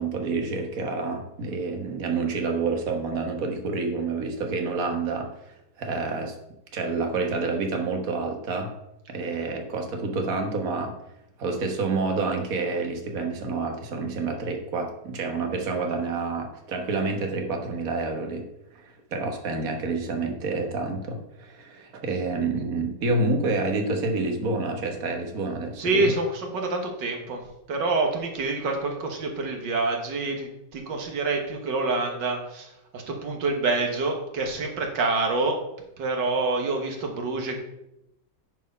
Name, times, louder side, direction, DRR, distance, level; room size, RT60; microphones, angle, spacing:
voice 1, 0.0-6.3 6.7-8.7 9.1-10.9 11.4-18.4 18.7-26.1, right 3 dB, 55° right, 3 dB, 1.6 m, -28 dB
voice 2, 25.8-35.6 36.0-37.6, right 3 dB, 90° right, 2 dB, 2.0 m, -27 dB
9.1 x 4.7 x 5.4 m, 0.85 s
omnidirectional pair, 1.9 m